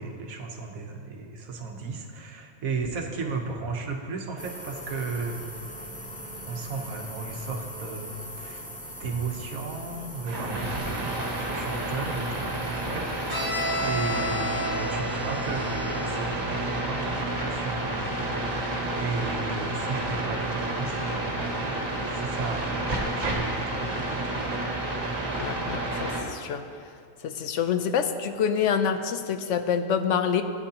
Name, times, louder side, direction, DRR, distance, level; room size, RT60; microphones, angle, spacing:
voice 1, 0.0-5.4 6.5-8.7 9.0-24.4, right 4 dB, 90° right, 3 dB, 1.4 m, -35 dB
sound 1, 4.4-13.7, equal, 5° left, 0.7 m, -41 dB
sound 2, 10.3-26.2, right 1 dB, 70° right, 1.9 m, -30 dB
Bowed string instrument, 13.3-17.0, left 1 dB, 25° right, 2.1 m, -33 dB
voice 2, 25.4-26.6 27.2-30.4, left 7 dB, 70° left, 8 dB, 0.9 m, -26 dB
15.5 x 9.7 x 2.9 m, 2.3 s
omnidirectional pair, 1.4 m